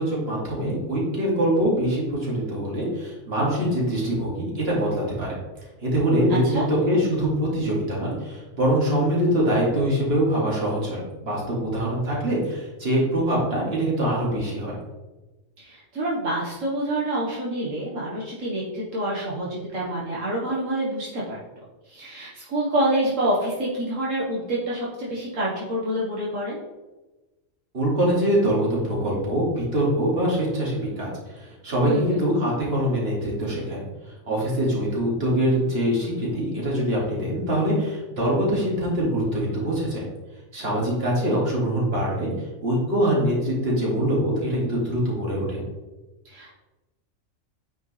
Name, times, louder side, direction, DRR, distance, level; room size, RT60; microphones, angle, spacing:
voice 1, 0.0-5.3 5.8-14.7 27.7-33.8 34.3-40.0 40.5-42.3 42.6-45.6, right 1 dB, 50° right, -5 dB, 2.6 m, -24 dB
voice 2, 6.3-6.7 15.6-21.4 21.9-26.6 31.8-32.2 46.3-46.5, right 1 dB, 80° right, -6 dB, 1.8 m, -27 dB
9.3 x 5.2 x 3.3 m, 1.1 s
omnidirectional pair, 1.3 m